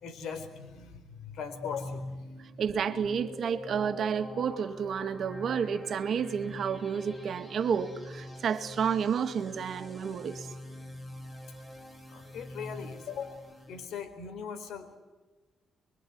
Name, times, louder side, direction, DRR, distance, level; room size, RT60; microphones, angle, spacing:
voice 1, 0.0-2.1 12.1-15.0, left 6 dB, 80° left, 8 dB, 4.2 m, -40 dB
sound 1, 1.3-13.9, left 1 dB, 20° left, 7.0 m, -45 dB
voice 2, 2.6-10.5, right 7 dB, 65° right, 9 dB, 2.1 m, -30 dB
25.0 x 24.0 x 9.5 m, 1.2 s
cardioid pair, 90°, 0 cm